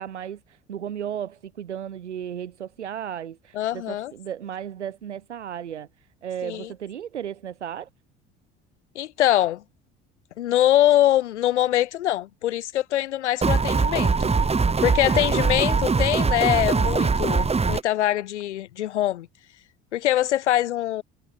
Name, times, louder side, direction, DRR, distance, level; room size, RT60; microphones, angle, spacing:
voice 1, 0.0-7.9 14.9-15.5, right 9 dB, 85° right, 3.4 m, -35 dB
voice 2, 3.5-4.1 6.4-6.7 8.9-9.6 10.4-14.3 14.8-19.3 19.9-21.0, left 13 dB, 80° left, 1.5 m, -23 dB
sound 1, 13.4-17.8, right 4 dB, 20° right, 1.4 m, -22 dB
hypercardioid pair, 65°, 34 cm